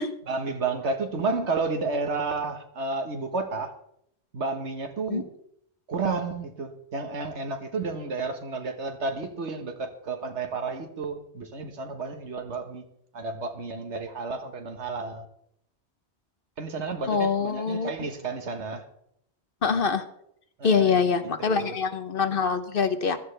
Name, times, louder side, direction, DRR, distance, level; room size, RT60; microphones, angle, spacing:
voice 1, 0.3-3.7 4.3-5.3 5.9-12.8 13.1-15.3 16.6-18.8 20.6-21.8, right 4 dB, 90° right, 7 dB, 1.7 m, -31 dB
voice 2, 17.1-17.9 19.6-20.0 20.6-23.2, left 5 dB, 55° left, 9 dB, 1.1 m, -24 dB
15.5 x 13.0 x 3.4 m, 0.73 s
omnidirectional pair, 1.1 m